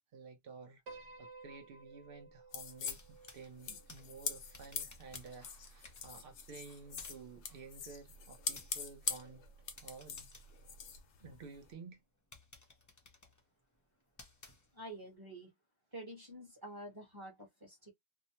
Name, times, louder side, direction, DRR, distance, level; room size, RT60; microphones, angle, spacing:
voice 1, 0.1-9.5 9.8-10.3 11.2-12.0, right 4 dB, 60° right, 0.8 m, -53 dB
Piano, 0.9-5.3, right 3 dB, 90° right, 1.0 m, -56 dB
sound 1, 2.5-11.7, left 7 dB, 80° left, 0.9 m, -44 dB
sound 2, 2.7-11.5 11.9-12.0 12.3-15.1, left 2 dB, 25° left, 0.4 m, -59 dB
voice 2, 14.7-15.5 15.9-17.9, right 1 dB, 20° right, 1.1 m, -48 dB
2.7 x 2.1 x 2.8 m
omnidirectional pair, 1.2 m